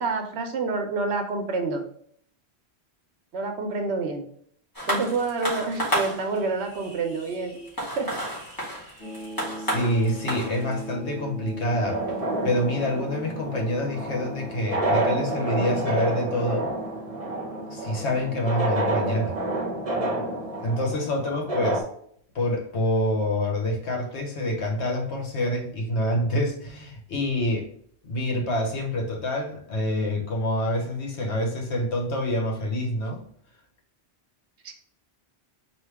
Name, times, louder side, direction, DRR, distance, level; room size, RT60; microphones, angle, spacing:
voice 1, 0.0-1.8 3.3-4.2 4.9-7.6 8.0-8.1 34.6-34.7, right 3 dB, 80° right, 5 dB, 0.9 m, -28 dB
sound 1, 4.7-13.6 14.4-14.5, equal, 20° left, 1.7 m, -33 dB
sound 2, 9.0-21.0, right 1 dB, 50° left, 1.9 m, -40 dB
voice 2, 9.6-12.0 12.4-16.7 17.7-19.3 20.6-21.8 22.3-27.7 28.0-33.2, left 1 dB, 80° left, 0 dB, 1.3 m, -27 dB
sound 3, 11.8-21.8, right 2 dB, 35° right, 0.9 m, -29 dB
4.5 x 2.8 x 3.4 m, 0.63 s
omnidirectional pair, 1.1 m